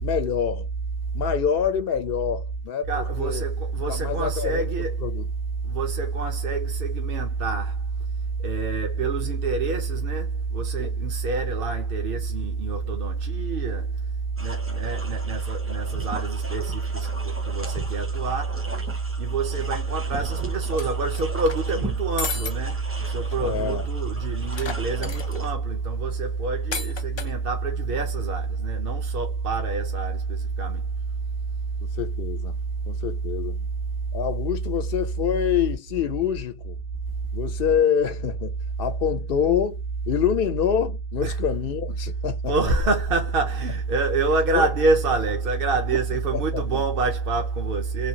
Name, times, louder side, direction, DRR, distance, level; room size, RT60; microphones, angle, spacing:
voice 1, 0.0-0.7 1.1-3.4 3.9-4.7 5.0-5.3 10.8-10.9 23.4-23.9 25.0-25.1 31.9-32.6 32.9-33.7 34.1-36.8 37.3-42.5 44.5-44.7 45.9-46.9, left 8 dB, 65° left, 0.9 m, -26 dB
voice 2, 2.9-5.1 5.6-7.7 8.4-13.9 14.4-18.6 19.2-30.8 41.2-41.4 42.5-48.1, right 4 dB, 65° right, 1.1 m, -26 dB
sound 1, 14.4-25.5, right 1 dB, 15° right, 0.6 m, -38 dB
sound 2, 20.8-21.7 22.2-22.5 22.9-23.0 23.3-23.4 24.5-25.5 26.7-27.3, left 5 dB, 40° left, 0.4 m, -33 dB
3.2 x 2.4 x 2.7 m
omnidirectional pair, 1.0 m